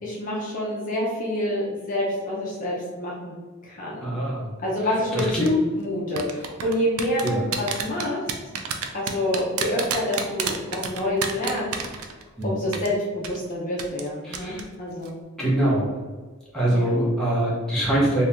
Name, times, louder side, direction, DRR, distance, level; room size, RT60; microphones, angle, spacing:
voice 1, 0.0-3.3 3.6-4.2 4.6-8.2 8.9-11.7 12.4-15.2 16.7-16.9, left 1 dB, 35° left, -4 dB, 0.6 m, -27 dB
voice 2, 4.0-4.5 5.1-5.5 7.2-7.4 12.4-12.5 14.2-14.6 15.4-15.9 16.5-18.2, right 1 dB, 5° left, -7 dB, 0.8 m, -23 dB
sound 1, 5.2-5.5 6.2-12.4 12.7-12.9 13.2-13.4 13.8-14.1 14.3-14.6 14.9-15.1, right 7 dB, 75° right, 0.4 m, -29 dB
2.8 x 2.7 x 3.4 m, 1.4 s
head